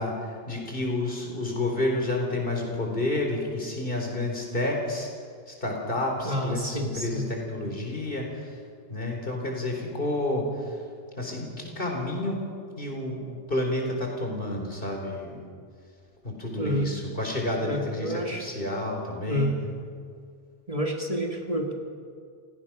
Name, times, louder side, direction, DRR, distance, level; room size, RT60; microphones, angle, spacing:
voice 1, 0.0-5.1 5.5-8.6 8.9-10.8 11.1-12.4 12.8-15.4 16.2-19.7, left 1 dB, 60° left, 1 dB, 4.4 m, -30 dB
voice 2, 6.2-7.3 16.6-16.9 17.6-18.4 19.3-19.5 20.7-21.7, equal, 35° right, 2 dB, 2.0 m, -29 dB
28.5 x 17.5 x 6.1 m, 2.2 s
omnidirectional pair, 1.1 m